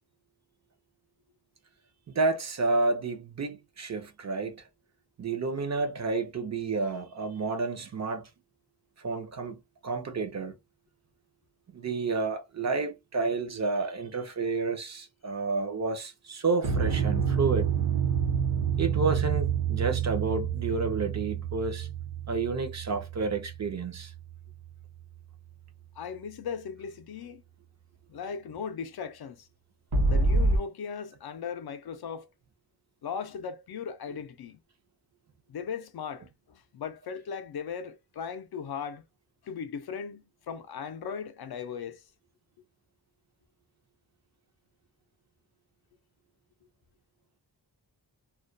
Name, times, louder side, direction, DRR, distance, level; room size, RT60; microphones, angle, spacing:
voice 1, 2.1-4.6 5.2-8.3 9.0-9.6 9.8-10.5 11.7-17.7 18.8-21.9 22.3-24.1, right 4 dB, 40° right, 0.5 m, -30 dB
sound 1, 16.6-25.0 29.9-30.6, right 5 dB, 65° right, 0.8 m, -28 dB
voice 2, 26.0-27.4 28.1-29.5 30.1-32.3 33.0-34.6 35.5-39.0 39.4-42.0, left 6 dB, 65° left, 0.5 m, -38 dB
2.3 x 2.2 x 2.5 m
wide cardioid pair, 165°, 41 cm